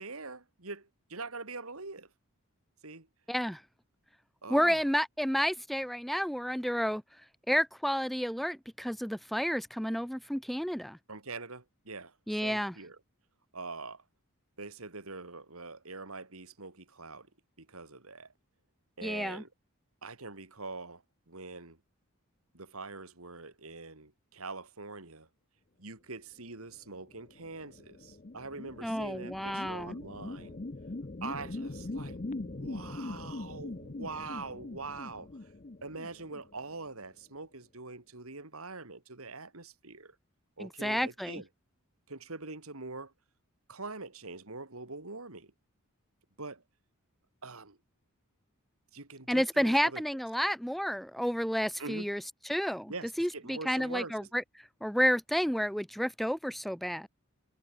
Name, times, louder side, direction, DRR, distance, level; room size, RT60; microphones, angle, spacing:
voice 1, 0.0-2.1 2.8-3.1 4.4-4.8 11.1-12.2 12.4-13.0 13.5-14.0 14.6-17.3 17.6-18.3 19.0-19.5 20.0-21.8 22.5-25.3 25.8-30.6 31.2-35.3 35.8-40.1 40.6-41.5 42.1-43.1 43.7-45.5 46.4-46.6 47.4-47.8 48.9-50.0 51.8-52.1 52.9-54.3, right 3 dB, 70° right, 3.1 m, -44 dB
voice 2, 3.3-3.6 4.5-7.0 7.5-11.0 12.3-12.8 19.0-19.4 28.8-30.0 40.6-41.4 49.3-52.2 52.5-52.9 53.2-54.4 54.8-57.1, equal, ahead, 0.4 m, -30 dB
sound 1, 27.1-36.9, left 2 dB, 35° left, 0.8 m, -42 dB
head